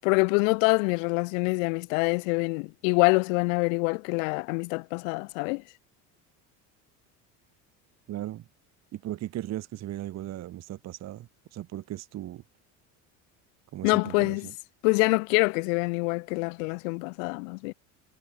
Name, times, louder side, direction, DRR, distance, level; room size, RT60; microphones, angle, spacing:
voice 1, 0.0-5.6 13.8-14.5 14.8-17.7, left 33 dB, 90° left, 0.6 m, -25 dB
voice 2, 8.1-8.4 8.9-12.4 13.7-14.4, right 13 dB, 45° right, 1.2 m, -37 dB
cardioid pair, 120°, 38 cm